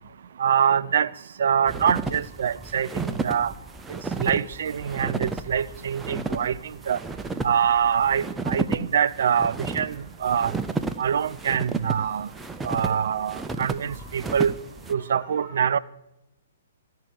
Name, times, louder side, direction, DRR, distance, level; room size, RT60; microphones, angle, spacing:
voice 1, 0.4-1.1 1.4-3.5 4.2-7.0 7.4-10.5 11.0-12.3 12.6-14.5 14.9-15.8, right 8 dB, 55° right, 0.4 m, -24 dB
sound 1, 1.7-14.9, right 3 dB, 10° right, 0.5 m, -32 dB
voice 2, 10.4-10.7 11.9-13.2 13.8-15.8, equal, 15° left, 1.6 m, -50 dB
14.0 x 5.7 x 7.2 m
figure-of-eight pair, 120°, 0 cm